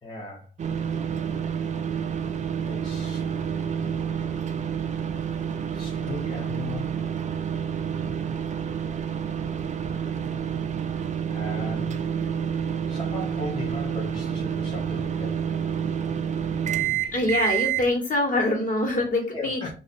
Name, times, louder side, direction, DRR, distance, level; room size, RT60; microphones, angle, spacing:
voice 1, 0.0-0.5 2.6-3.2 5.7-6.9 11.3-12.0 12.9-15.4 19.3-19.7, left 2 dB, 25° left, -3 dB, 0.9 m, -36 dB
sound 1, 0.6-17.9, right 8 dB, 35° right, 0.5 m, -29 dB
voice 2, 16.7-19.6, left 1 dB, 40° left, 1 dB, 1.5 m, -25 dB
2.6 x 2.5 x 4.2 m, 0.36 s
cardioid pair, 90°, 20 cm